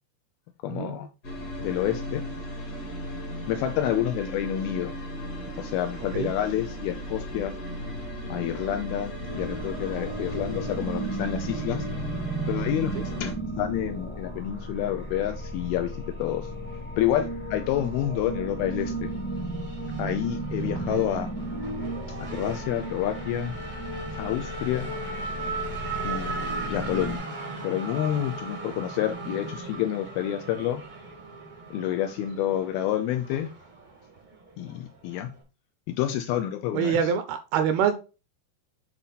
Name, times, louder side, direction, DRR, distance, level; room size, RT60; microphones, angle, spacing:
voice 1, 0.6-1.1 1.6-2.2 3.5-5.0 5.6-7.6 8.3-11.9 12.5-15.9 16.2-16.5 17.0-19.1 20.0-21.3 22.2-23.6 24.2-24.9 26.0-27.3 27.6-30.8 31.7-33.5 34.6-35.3 35.9-37.1, left 11 dB, 85° left, 2.2 m, -29 dB
sound 1, 1.2-13.3, equal, 45° left, 1.2 m, -36 dB
sound 2, 9.3-27.2, right 1 dB, 10° left, 0.6 m, -34 dB
Race car auto racing / Accelerating revving vroom, 18.4-35.4, right 3 dB, 50° right, 0.5 m, -38 dB
voice 2, 36.7-37.9, right 7 dB, 80° right, 2.3 m, -25 dB
8.1 x 4.2 x 4.0 m
omnidirectional pair, 4.9 m